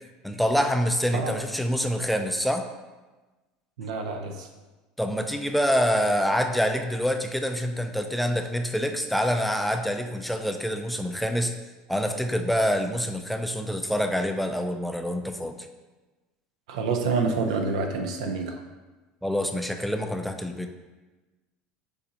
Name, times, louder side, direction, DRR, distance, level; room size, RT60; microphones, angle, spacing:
voice 1, 0.2-2.6 5.0-11.5 11.9-15.6 19.2-20.7, equal, ahead, 5 dB, 0.3 m, -26 dB
voice 2, 3.8-4.5 16.7-18.6, right 4 dB, 90° right, 4 dB, 0.6 m, -27 dB
6.5 x 2.7 x 2.8 m, 1.2 s
supercardioid pair, 105°, 3 cm